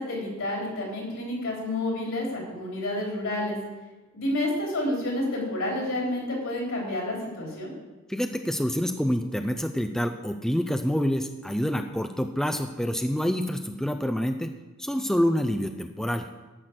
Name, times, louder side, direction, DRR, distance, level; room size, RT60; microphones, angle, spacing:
voice 1, 0.0-3.6 4.1-7.7, left 1 dB, 70° left, -1 dB, 3.6 m, -29 dB
voice 2, 8.1-14.5 14.8-16.3, equal, ahead, 6 dB, 0.4 m, -27 dB
11.0 x 5.9 x 7.8 m, 1.2 s
head